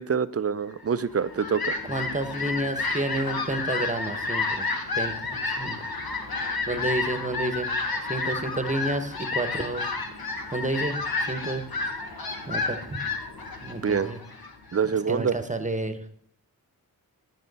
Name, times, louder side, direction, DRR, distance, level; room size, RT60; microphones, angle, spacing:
voice 1, 0.0-1.8 13.8-14.1 14.7-15.4, right 6 dB, 40° right, 15 dB, 0.4 m, -26 dB
Fowl, 1.0-14.9, left 3 dB, 70° left, 1.2 m, -31 dB
voice 2, 1.8-4.6 4.9-5.8 6.7-7.7 8.1-9.8 10.5-11.6 12.5-13.1 13.6-14.2 15.1-16.0, right 1 dB, 20° right, 9 dB, 0.9 m, -30 dB
10.0 x 8.9 x 4.0 m, 0.63 s
wide cardioid pair, 55°, 38 cm